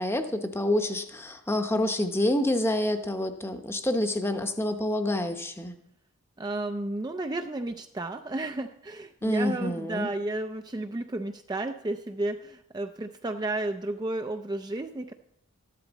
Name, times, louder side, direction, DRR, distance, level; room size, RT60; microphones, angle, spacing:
voice 1, 0.0-5.7 9.2-10.1, left 1 dB, 10° left, 7 dB, 0.8 m, -27 dB
voice 2, 6.4-15.1, right 2 dB, 20° right, 6 dB, 0.4 m, -32 dB
13.5 x 11.5 x 4.1 m, 0.81 s
head